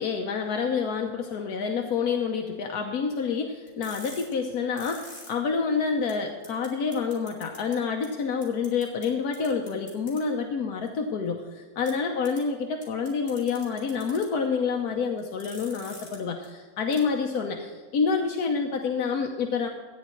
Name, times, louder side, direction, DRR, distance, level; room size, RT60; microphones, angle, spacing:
voice 1, 0.0-19.7, left 5 dB, 90° left, 3 dB, 1.4 m, -28 dB
sound 1, 3.7-5.3 5.7-5.8 6.1-6.2 6.4-6.7 6.9-7.7 8.0-8.1 8.4-9.0 9.3-10.2 11.8-11.9 12.2-12.4 12.8-14.2 15.2-16.2 16.4-16.5 16.9-17.0, left 1 dB, 55° left, 4.3 m, -45 dB
14.0 x 9.4 x 4.5 m, 1.5 s
omnidirectional pair, 1.6 m